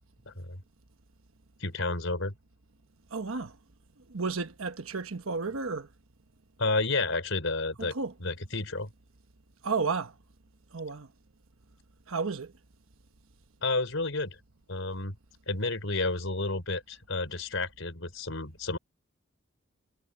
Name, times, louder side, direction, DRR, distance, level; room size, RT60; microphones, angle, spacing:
voice 1, 0.3-0.6 1.6-2.3 6.6-7.9 8.2-8.9 13.6-14.4 14.7-15.2 15.5-18.8, left 3 dB, 70° left, 4.4 m, -31 dB
voice 2, 3.1-3.5 4.1-5.9 7.8-8.1 9.6-10.1 10.7-11.1 12.1-12.5, right 4 dB, 90° right, 1.2 m, -32 dB
head